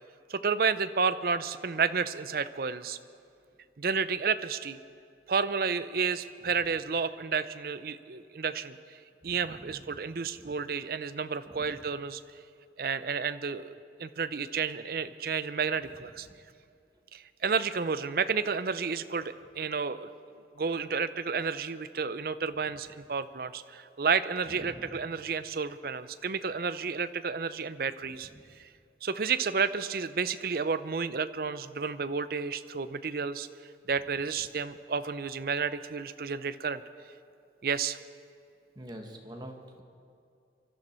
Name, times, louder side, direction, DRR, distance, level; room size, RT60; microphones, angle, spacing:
voice 1, 0.3-3.0 3.8-4.8 5.3-9.0 9.2-12.2 12.8-13.7 14.0-16.3 17.1-20.1 20.6-28.3 28.6-28.7 29.0-33.5 33.9-36.8 37.6-38.0, right 5 dB, 55° right, 13 dB, 0.5 m, -31 dB
voice 2, 9.2-10.0 10.4-10.5 11.5-11.7 16.3-16.4 24.5-25.0 28.3-28.4 38.7-39.8, right 1 dB, 20° right, 3 dB, 1.3 m, -46 dB
24.0 x 12.5 x 4.4 m, 2.5 s
head